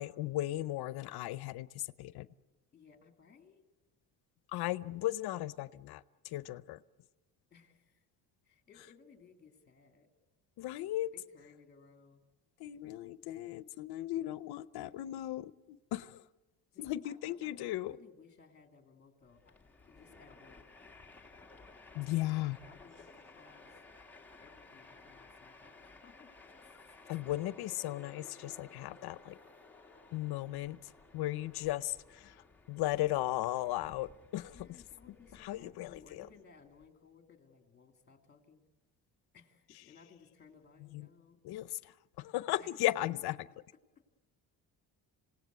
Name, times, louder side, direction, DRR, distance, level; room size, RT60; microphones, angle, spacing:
voice 1, 0.0-2.3 4.5-6.8 10.6-11.1 12.6-16.2 16.8-18.0 21.9-22.6 27.1-29.4 30.1-34.5 35.4-36.2 40.9-41.1 41.4-43.4, left 15 dB, 85° left, 15 dB, 0.7 m, -36 dB
voice 2, 2.7-3.7 7.5-8.1 8.4-10.1 11.1-12.2 16.7-20.6 22.7-23.8 24.4-26.3 26.6-26.7 34.5-38.6 39.3-41.4 42.6-43.1, left 5 dB, 25° left, 4 dB, 2.7 m, -60 dB
Train, 19.3-36.9, left 3 dB, 5° left, 1.6 m, -57 dB
27.5 x 17.5 x 8.2 m, 1.1 s
cardioid pair, 150°, 38 cm